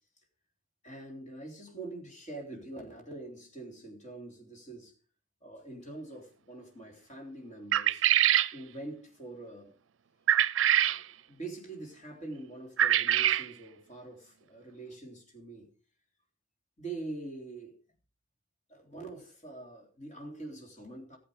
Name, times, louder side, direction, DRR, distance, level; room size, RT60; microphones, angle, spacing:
voice 1, 0.8-4.9 5.4-8.0 8.5-9.8 10.8-15.7 16.8-17.8 18.7-21.2, right 2 dB, 35° left, 3.6 m, -44 dB
sound 1, 7.7-8.5 10.3-11.0 12.8-13.5, right 11 dB, 75° right, 0.5 m, -24 dB
15.0 x 7.8 x 5.1 m
head